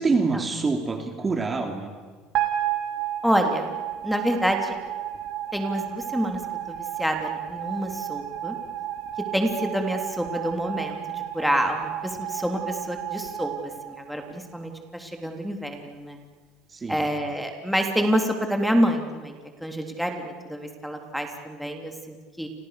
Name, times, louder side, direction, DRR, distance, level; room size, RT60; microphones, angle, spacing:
voice 1, 0.0-1.9 16.7-17.1, right 4 dB, 20° right, 5 dB, 3.1 m, -26 dB
sound 1, 2.3-14.6, right 11 dB, 60° right, 3.5 m, -32 dB
voice 2, 3.2-3.7 4.0-4.7 5.5-6.4 6.7-8.6 9.3-11.0 11.3-13.5 13.8-16.2 16.9-19.3 19.6-22.5, equal, ahead, 3 dB, 3.4 m, -27 dB
30.0 x 27.0 x 6.8 m, 1.5 s
supercardioid pair, 105°, 0 cm